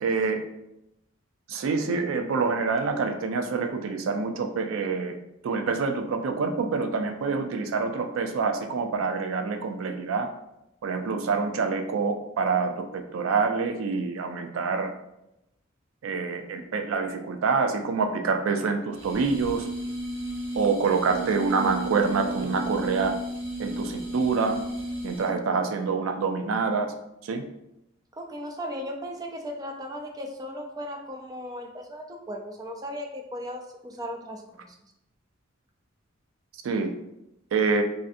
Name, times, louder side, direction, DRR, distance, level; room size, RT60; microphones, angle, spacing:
voice 1, 0.0-0.4 1.5-5.1 5.4-10.3 10.8-14.9 16.0-19.7 20.5-23.2 23.6-24.6 25.0-26.9 27.2-27.4 36.6-36.9 37.5-37.8, right 4 dB, 85° right, 6 dB, 0.4 m, -26 dB
sound 1, 19.0-25.5, right 1 dB, 70° right, 0.9 m, -34 dB
voice 2, 28.1-34.8, equal, 20° right, 2 dB, 0.4 m, -37 dB
3.2 x 2.5 x 2.5 m, 0.87 s
head